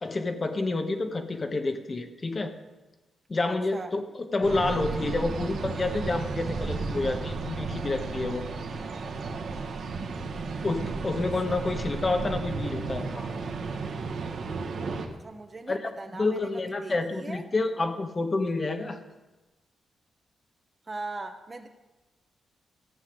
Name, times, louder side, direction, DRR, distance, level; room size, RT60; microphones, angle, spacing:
voice 1, 0.0-2.5 3.3-8.4 10.6-13.3 15.7-19.0, left 3 dB, 25° left, 7 dB, 1.0 m, -29 dB
sound 1, 4.4-15.1, right 4 dB, 55° right, 1.6 m, -33 dB
voice 2, 15.1-17.4 20.9-21.7, right 3 dB, 20° right, 6 dB, 0.9 m, -40 dB
14.5 x 8.2 x 7.8 m, 1.1 s
wide cardioid pair, 175°, 0 cm